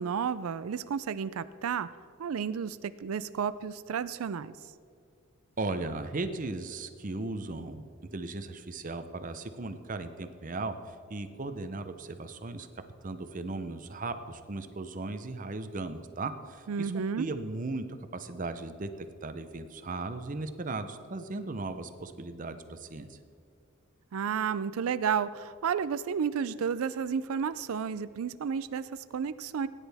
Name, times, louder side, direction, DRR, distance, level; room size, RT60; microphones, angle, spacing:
voice 1, 0.0-1.9 2.2-4.5 16.7-17.3 24.1-29.7, right 7 dB, 90° right, 14 dB, 0.4 m, -32 dB
voice 2, 5.6-12.7 13.0-17.9 18.1-23.2, right 3 dB, 40° right, 9 dB, 0.7 m, -37 dB
17.5 x 10.0 x 3.5 m, 2.3 s
head